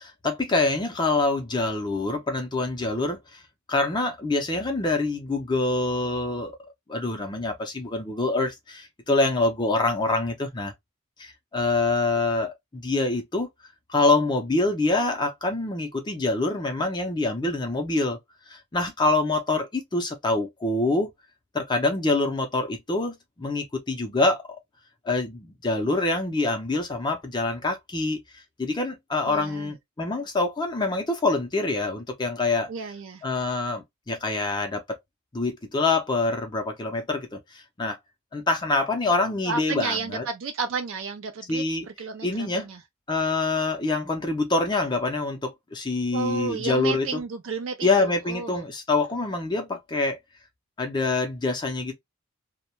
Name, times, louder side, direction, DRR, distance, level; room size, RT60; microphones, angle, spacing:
voice 1, 0.0-3.4 3.7-6.5 6.9-10.7 11.2-13.5 13.9-18.2 18.5-21.1 21.5-24.6 25.0-28.2 28.6-32.7 33.2-35.0 35.3-38.0 38.3-40.2 41.5-41.9 42.2-42.7 43.1-47.2 47.8-50.2 50.8-51.9, left 2 dB, 20° left, 0.5 m, -25 dB
voice 2, 29.2-29.7 32.7-33.2 39.4-41.6 42.0-42.3 42.5-42.8 46.1-48.6, right 4 dB, 60° right, 0.3 m, -32 dB
2.2 x 2.1 x 2.9 m
head